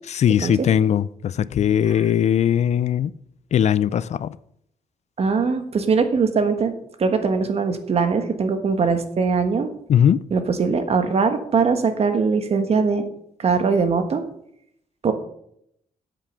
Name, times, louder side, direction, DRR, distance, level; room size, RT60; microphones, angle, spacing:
voice 1, 0.1-3.1 3.5-4.4 9.9-10.2, left 9 dB, 55° left, 18 dB, 0.4 m, -19 dB
voice 2, 5.2-6.7 7.0-9.7 10.3-13.0 13.4-14.2 15.0-15.1, right 5 dB, 50° right, 8 dB, 1.4 m, -21 dB
8.8 x 7.6 x 6.6 m, 0.72 s
cardioid pair, 115°, 13 cm